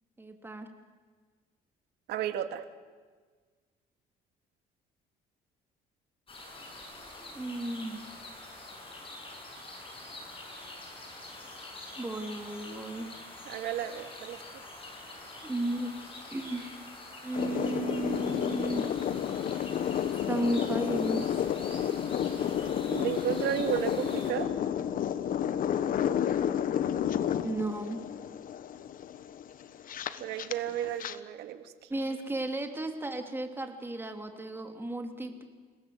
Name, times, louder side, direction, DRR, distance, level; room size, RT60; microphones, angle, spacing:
voice 1, 0.2-0.7 7.2-8.0 12.0-13.1 15.4-15.9 16.3-18.9 20.3-21.3 27.4-28.0 31.9-35.4, right 2 dB, 15° right, 4 dB, 3.0 m, -34 dB
voice 2, 2.1-2.6 13.5-14.4 22.9-24.5 30.2-31.7, right 11 dB, 80° right, 8 dB, 2.0 m, -33 dB
sound 1, 6.3-24.3, left 2 dB, 30° left, 7.1 m, -46 dB
sound 2, 17.3-31.2, left 9 dB, 55° left, 1.2 m, -31 dB
29.5 x 18.0 x 8.0 m, 1.5 s
cardioid pair, 110°, 17 cm